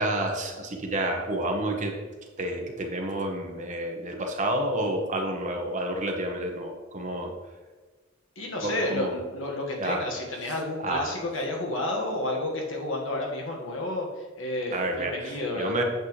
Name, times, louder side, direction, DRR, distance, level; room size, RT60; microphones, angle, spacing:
voice 1, 0.0-1.9 2.4-7.3 8.6-9.2 9.8-10.0 10.8-11.1 14.7-15.8, right 1 dB, 40° right, 2 dB, 1.0 m, -29 dB
voice 2, 8.4-15.7, left 1 dB, 70° left, 0 dB, 1.6 m, -31 dB
8.5 x 7.3 x 3.2 m, 1.3 s
head